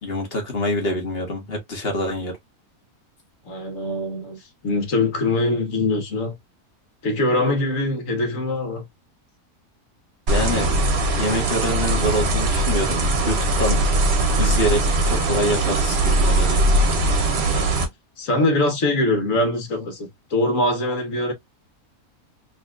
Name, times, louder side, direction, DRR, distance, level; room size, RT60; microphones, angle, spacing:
voice 1, 0.0-2.3 10.3-10.7 11.2-13.8 14.4-16.6, left 1 dB, 40° left, 1.5 m, -25 dB
voice 2, 3.4-6.3 7.0-8.8 17.5-17.9 18.2-21.3, left 2 dB, 60° left, 1.6 m, -23 dB
sound 1, 10.3-17.9, right 2 dB, 50° right, 1.0 m, -20 dB
4.0 x 2.9 x 2.4 m
omnidirectional pair, 1.6 m